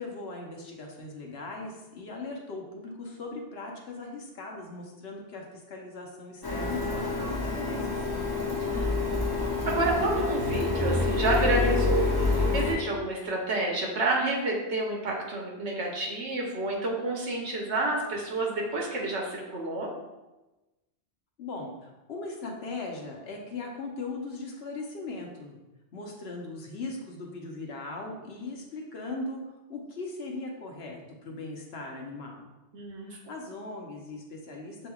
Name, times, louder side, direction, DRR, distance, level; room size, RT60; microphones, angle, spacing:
voice 1, 0.0-8.3 21.4-25.6 25.9-29.4 29.7-32.5 33.0-34.9, left 3 dB, 70° left, 0 dB, 1.0 m, -39 dB
Printer, 6.4-12.8, left 3 dB, 25° left, 0.6 m, -27 dB
voice 2, 9.7-12.0 12.3-19.9 32.7-33.2, right 2 dB, 85° right, -1 dB, 1.2 m, -29 dB
6.9 x 3.2 x 2.3 m, 1.1 s
omnidirectional pair, 1.1 m